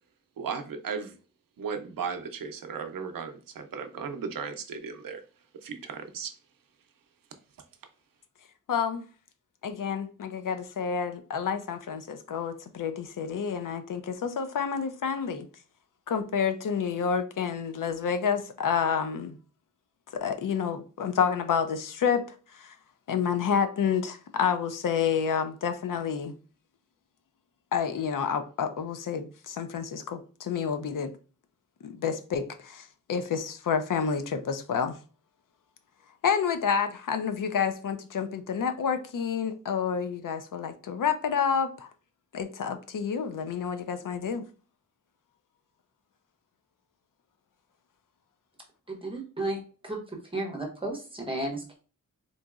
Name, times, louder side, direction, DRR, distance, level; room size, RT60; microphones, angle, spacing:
voice 1, 0.4-1.1 1.6-5.2 5.6-6.3, right 6 dB, 80° right, 0.6 m, -36 dB
voice 2, 8.7-9.0 9.6-15.5 16.1-19.4 20.1-22.3 22.5-22.8 23.1-26.4 27.7-31.1 31.8-35.0 36.2-41.9 42.3-44.4, left 7 dB, 70° left, 0.5 m, -29 dB
voice 3, 48.9-51.8, right 2 dB, 15° right, 0.9 m, -34 dB
3.9 x 2.9 x 2.4 m
wide cardioid pair, 170°, 33 cm